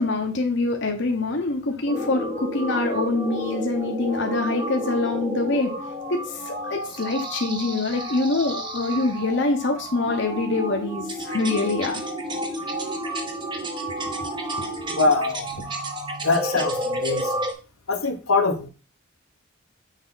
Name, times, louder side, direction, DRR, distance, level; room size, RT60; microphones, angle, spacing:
voice 1, 0.0-5.7 6.1-12.1, left 3 dB, 55° left, 3 dB, 0.9 m, -25 dB
sound 1, 1.9-17.5, right 1 dB, 20° right, 0.8 m, -31 dB
voice 2, 14.9-15.5 16.2-17.4 17.9-18.7, left 3 dB, 85° left, 4 dB, 1.1 m, -23 dB
6.3 x 4.5 x 4.0 m, 0.33 s
head